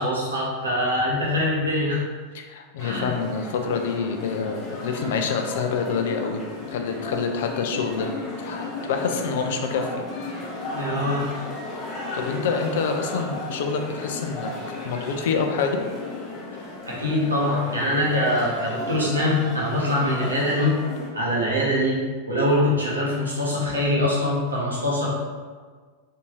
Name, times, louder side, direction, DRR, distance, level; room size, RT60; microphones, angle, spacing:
voice 1, 0.0-2.0 2.8-3.1 10.7-11.2 16.9-20.7 21.1-22.0 22.3-25.1, left 1 dB, 75° right, -5 dB, 1.0 m, -23 dB
voice 2, 2.3-6.4 6.7-8.1 8.4-10.0 12.1-14.5 14.8-15.8, left 5 dB, 55° left, 4 dB, 0.4 m, -27 dB
sound 1, 2.8-21.1, left 2 dB, 30° left, 0.7 m, -34 dB
3.4 x 2.7 x 3.0 m, 1.5 s
figure-of-eight pair, 90°, 0 cm